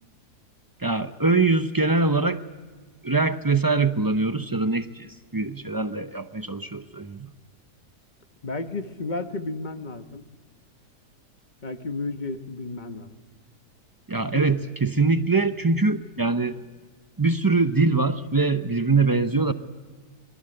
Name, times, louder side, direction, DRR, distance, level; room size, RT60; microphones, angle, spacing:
voice 1, 0.8-2.4 3.0-7.3 14.1-16.6 17.2-19.5, right 3 dB, 35° right, 9 dB, 0.3 m, -23 dB
voice 2, 8.4-10.2 11.6-13.1 14.3-14.6, left 3 dB, 30° left, 8 dB, 1.3 m, -32 dB
25.5 x 22.5 x 7.9 m, 1.4 s
omnidirectional pair, 1.7 m